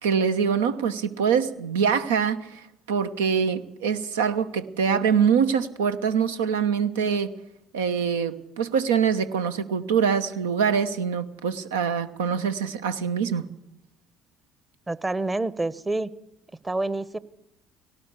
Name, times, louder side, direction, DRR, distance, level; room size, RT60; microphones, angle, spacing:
voice 1, 0.0-7.3 7.7-13.4, right 7 dB, 80° right, 11 dB, 1.1 m, -24 dB
voice 2, 14.9-16.1 16.6-17.2, right 2 dB, 20° right, 17 dB, 1.1 m, -27 dB
18.0 x 18.0 x 8.2 m, 0.81 s
hypercardioid pair, 55°, 0 cm